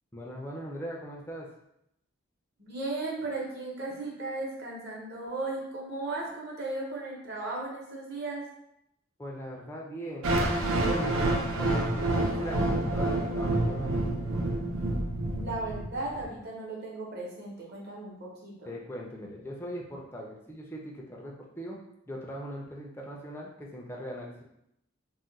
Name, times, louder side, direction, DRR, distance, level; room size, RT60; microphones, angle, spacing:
voice 1, 0.1-1.5 9.2-14.1 18.7-21.8 22.1-24.4, equal, 10° left, -2 dB, 0.4 m, -40 dB
voice 2, 2.6-8.4 15.3-18.7, right 2 dB, 50° right, -3 dB, 0.8 m, -36 dB
sound 1, 10.2-16.2, right 2 dB, 80° right, 0.4 m, -28 dB
2.3 x 2.1 x 3.9 m, 0.78 s
head